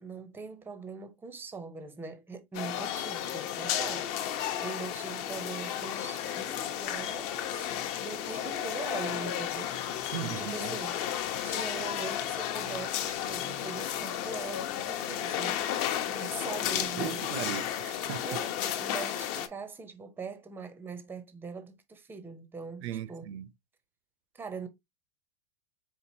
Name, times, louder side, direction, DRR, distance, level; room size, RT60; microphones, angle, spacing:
voice 1, 0.0-4.1 4.6-7.7 8.0-9.7 10.4-15.6 16.0-17.2 18.3-23.3 24.3-24.7, right 4 dB, 5° right, 0.6 m, -42 dB
sound 1, 2.5-19.5, left 10 dB, 45° left, 0.8 m, -33 dB
voice 2, 10.1-10.7 16.7-18.3 22.8-23.5, right 11 dB, 70° right, 0.6 m, -38 dB
4.4 x 3.8 x 2.7 m
supercardioid pair, 135°, 33 cm